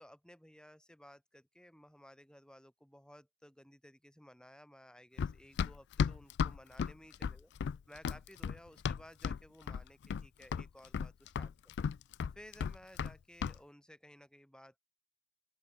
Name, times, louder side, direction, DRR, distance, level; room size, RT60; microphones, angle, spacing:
voice 1, 0.0-7.5 7.9-11.7 12.4-14.8, equal, 5° left, 5.6 m, -57 dB
Run, 5.2-9.4 9.7-10.3 10.5-13.1 13.4-13.6, left 6 dB, 55° left, 0.3 m, -35 dB
open air
head